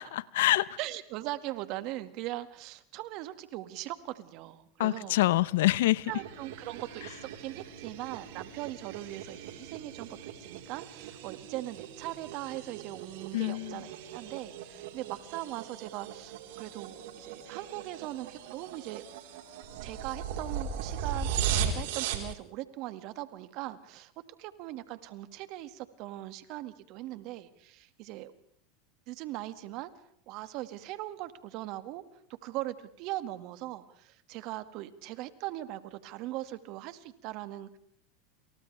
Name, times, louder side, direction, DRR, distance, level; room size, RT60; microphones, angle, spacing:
voice 1, 0.0-0.7 4.8-6.1 13.3-13.8, left 16 dB, 75° left, 0.8 m, -26 dB
voice 2, 0.8-5.2 6.1-19.0 19.8-24.1 24.4-28.3 29.1-29.9 30.3-32.0 32.4-37.8, right 16 dB, 55° right, 2.1 m, -40 dB
sound 1, 6.0-22.3, right 7 dB, 75° right, 4.3 m, -38 dB
29.0 x 29.0 x 3.5 m
hypercardioid pair, 105°, 0 cm